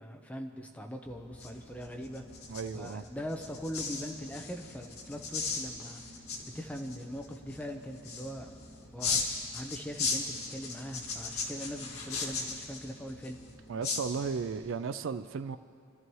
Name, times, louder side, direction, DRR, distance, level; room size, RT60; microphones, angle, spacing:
voice 1, 0.0-2.2 2.7-6.0 6.4-8.7 8.9-9.3 9.5-13.4, equal, 5° left, 2 dB, 0.9 m, -41 dB
sound 1, 1.0-14.6, left 4 dB, 90° left, 2.0 m, -38 dB
voice 2, 2.5-3.0 13.7-15.6, right 5 dB, 65° right, 11 dB, 0.4 m, -35 dB
27.5 x 12.5 x 3.1 m, 2.4 s
head